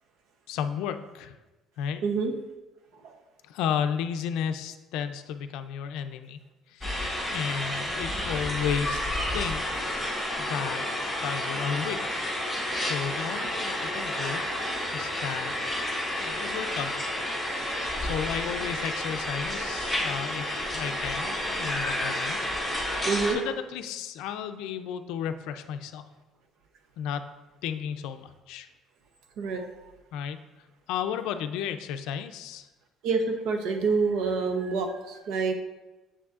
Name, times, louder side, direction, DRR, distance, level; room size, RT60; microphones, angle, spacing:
voice 1, 0.5-1.4 1.8-2.0 3.5-6.4 6.7-9.0 9.3-9.9 10.4-10.8 11.2-12.2 12.8-14.4 14.9-15.5 16.2-17.0 18.0-22.9 23.3-26.1 27.0-27.3 27.6-28.7 30.1-30.4 30.9-32.7, left 8 dB, 80° left, 9 dB, 0.4 m, -33 dB
voice 2, 2.0-2.3 3.0-3.1 21.2-21.4 23.1-23.4 29.4-29.7 33.0-35.5, right 4 dB, 60° right, 5 dB, 0.8 m, -27 dB
sound 1, 6.8-23.3, left 1 dB, 5° right, 1.4 m, -30 dB
7.0 x 7.0 x 2.4 m, 1.1 s
cardioid pair, 170°, 0 cm